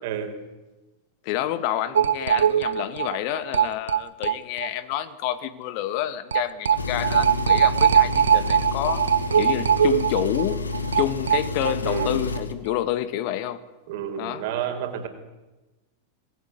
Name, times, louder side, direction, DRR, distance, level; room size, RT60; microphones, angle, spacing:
voice 1, 0.0-0.3 11.8-12.2 13.9-15.1, right 9 dB, 50° right, 4.9 m, -30 dB
voice 2, 1.2-9.1 9.3-10.7 11.0-13.6 14.2-14.5, left 12 dB, 45° left, 2.0 m, -28 dB
sound 1, 1.9-4.7 5.0-5.1 5.3-5.4 6.3-12.1 12.3-12.4 12.7-12.8, right 9 dB, 65° right, 0.9 m, -21 dB
Engine, 6.7-12.5, left 4 dB, 75° left, 2.4 m, -30 dB
25.5 x 20.0 x 9.4 m
figure-of-eight pair, 90°, 0 cm